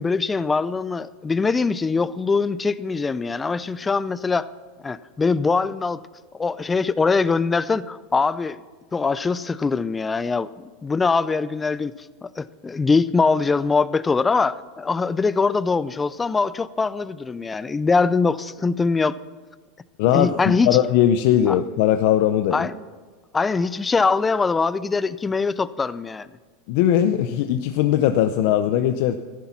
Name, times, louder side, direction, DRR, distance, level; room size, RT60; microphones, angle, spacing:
voice 1, 0.0-4.5 4.8-6.0 6.4-8.6 8.9-11.9 12.2-19.2 20.1-20.7 21.5-21.6 22.5-22.7 23.3-26.3, left 4 dB, 15° left, 17 dB, 0.5 m, -22 dB
voice 2, 20.0-22.7 26.7-29.1, left 11 dB, 65° left, 9 dB, 0.7 m, -19 dB
14.0 x 12.0 x 5.9 m, 1.4 s
supercardioid pair, 120°, 0 cm